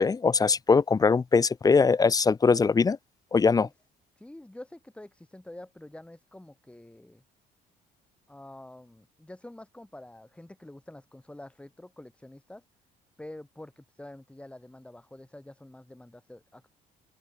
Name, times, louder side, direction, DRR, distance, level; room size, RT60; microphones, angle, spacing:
voice 1, 0.0-3.0 3.3-3.7, left 4 dB, 20° left, 0.7 m, -21 dB
voice 2, 4.2-7.2 8.3-12.6 13.2-16.7, left 1 dB, 5° left, 4.9 m, -47 dB
open air
cardioid pair, 110°, 17 cm